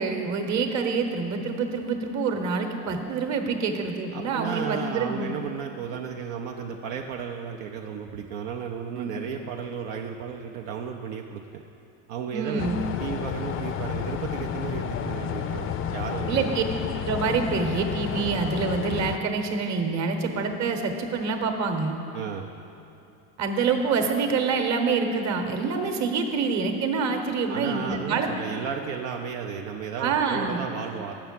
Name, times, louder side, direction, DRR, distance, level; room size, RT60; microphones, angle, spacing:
voice 1, 0.0-5.3 8.9-9.1 12.3-12.8 16.3-16.6 17.0-21.9 23.4-28.3 30.0-30.6, right 5 dB, 45° right, 5 dB, 1.0 m, -26 dB
voice 2, 4.1-11.6 12.1-16.6 22.1-22.5 27.5-31.1, right 7 dB, 70° right, 1 dB, 0.6 m, -34 dB
sound 1, 12.6-19.2, left 8 dB, 35° left, 0.5 m, -31 dB
6.8 x 5.8 x 7.5 m, 2.8 s
hypercardioid pair, 80°, 39 cm